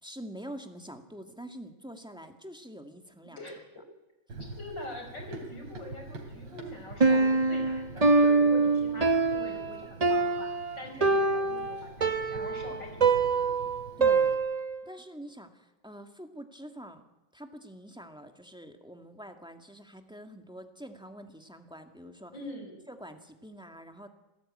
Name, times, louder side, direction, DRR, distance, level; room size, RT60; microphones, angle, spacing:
voice 1, 0.0-3.4 14.0-14.3 14.8-17.0 17.3-22.4 22.9-24.1, equal, ahead, 6 dB, 1.7 m, -46 dB
Run, 4.3-14.4, right 2 dB, 75° right, 3.7 m, -46 dB
voice 2, 4.6-10.5 10.8-13.4 22.3-22.8, left 1 dB, 60° left, 3 dB, 6.5 m, -43 dB
Piano, 7.0-14.9, right 3 dB, 35° right, 0.6 m, -25 dB
26.0 x 16.5 x 8.8 m, 1.0 s
omnidirectional pair, 2.1 m